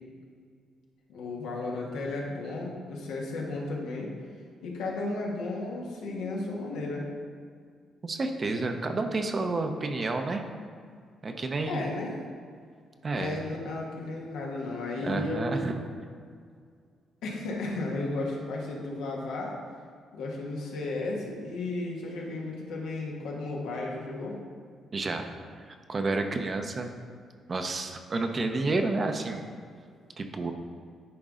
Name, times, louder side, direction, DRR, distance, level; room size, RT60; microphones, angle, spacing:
voice 1, 1.1-4.1 4.6-7.1 8.9-9.1 11.7-12.1 13.1-15.6 17.2-19.5 20.1-24.4, left 2 dB, 90° left, -2 dB, 1.3 m, -34 dB
voice 2, 8.0-10.5 11.2-11.9 13.0-13.4 15.0-15.7 24.9-26.9 27.5-29.4 30.2-30.5, right 3 dB, 35° right, 6 dB, 0.7 m, -30 dB
10.0 x 3.9 x 3.7 m, 2.1 s
cardioid pair, 90°, 0 cm